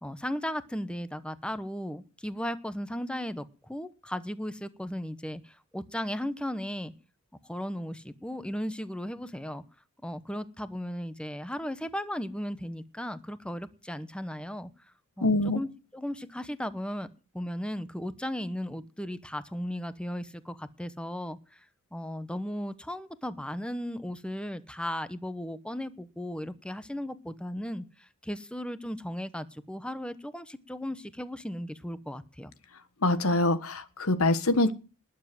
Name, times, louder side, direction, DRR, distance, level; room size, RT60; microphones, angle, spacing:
voice 1, 0.0-6.9 7.5-9.6 10.0-14.7 15.2-17.1 17.3-21.7 21.9-32.5, equal, 5° left, 0.9 m, -36 dB
voice 2, 15.2-15.6 33.0-34.7, left 2 dB, 80° left, 1.4 m, -24 dB
20.0 x 7.3 x 7.7 m
head